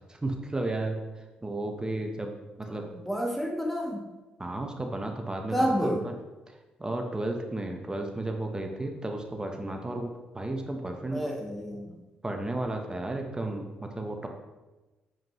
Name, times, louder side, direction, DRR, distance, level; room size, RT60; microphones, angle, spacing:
voice 1, 0.1-2.9 4.4-6.1 6.5-11.2 12.2-14.3, right 2 dB, 20° right, 3 dB, 1.0 m, -33 dB
voice 2, 3.1-4.0 5.5-6.0 11.1-11.9, equal, 5° left, 2 dB, 0.9 m, -29 dB
7.3 x 5.1 x 3.1 m, 1.1 s
hypercardioid pair, 45°, 4 cm